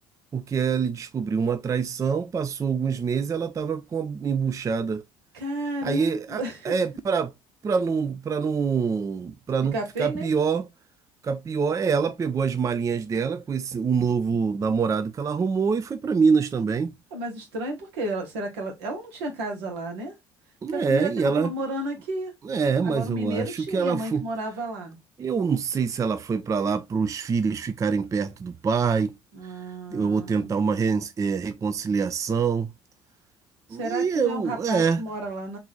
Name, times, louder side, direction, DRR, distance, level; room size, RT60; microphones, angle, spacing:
voice 1, 0.3-5.0 5.8-7.3 7.6-10.7 11.2-16.9 20.6-21.5 22.4-24.3 25.2-29.2 29.9-32.7 33.7-35.0, right 5 dB, 25° right, 0.4 m, -25 dB
voice 2, 5.3-6.7 9.7-10.3 17.1-20.1 20.7-22.3 22.8-25.0 29.3-30.5 33.8-35.6, right 1 dB, 80° right, 1.2 m, -32 dB
3.6 x 2.6 x 3.1 m
hypercardioid pair, 60°, 14 cm